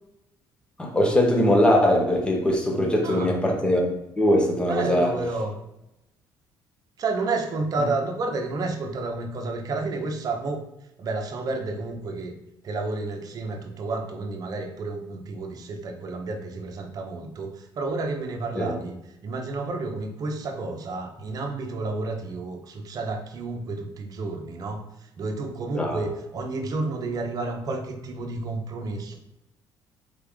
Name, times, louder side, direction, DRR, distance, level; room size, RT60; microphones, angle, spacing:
voice 1, 0.8-5.2 18.5-18.7 25.7-26.0, left 1 dB, 10° left, 1 dB, 1.0 m, -21 dB
voice 2, 4.7-5.5 7.0-10.6 11.0-12.3 12.6-19.0 19.2-29.2, right 3 dB, 50° right, 3 dB, 0.8 m, -31 dB
4.2 x 3.3 x 3.6 m, 0.88 s
cardioid pair, 100°, 8 cm